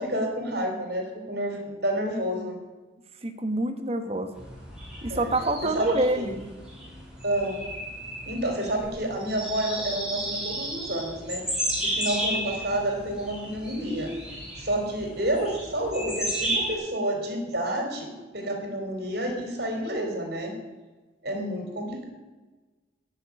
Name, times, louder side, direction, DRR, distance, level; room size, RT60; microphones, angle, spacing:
voice 1, 0.0-2.6 5.1-5.3 5.6-6.3 7.2-7.6 8.3-11.4 11.8-14.1 14.6-20.5 21.2-22.0, right 1 dB, 55° right, 3 dB, 3.6 m, -29 dB
voice 2, 3.2-4.3 5.0-6.5, right 2 dB, 35° right, 8 dB, 1.2 m, -27 dB
sound 1, 4.3-16.7, right 1 dB, 5° right, 4.3 m, -33 dB
11.5 x 6.7 x 9.6 m, 1.2 s
head